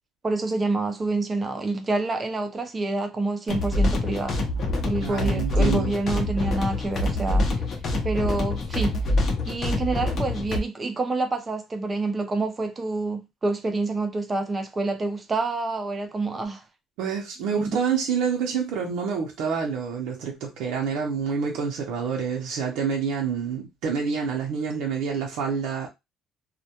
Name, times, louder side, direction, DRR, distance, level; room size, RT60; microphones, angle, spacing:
voice 1, 0.2-4.4 4.8-7.5 8.0-9.0 9.5-16.6 17.6-17.7, right 3 dB, 20° right, 0.4 m, -27 dB
sound 1, 3.5-10.6, left 2 dB, 35° left, 0.5 m, -25 dB
voice 2, 5.0-6.0 17.0-25.9, right 6 dB, 80° right, 0.5 m, -27 dB
2.2 x 2.1 x 2.8 m
cardioid pair, 170°, 0 cm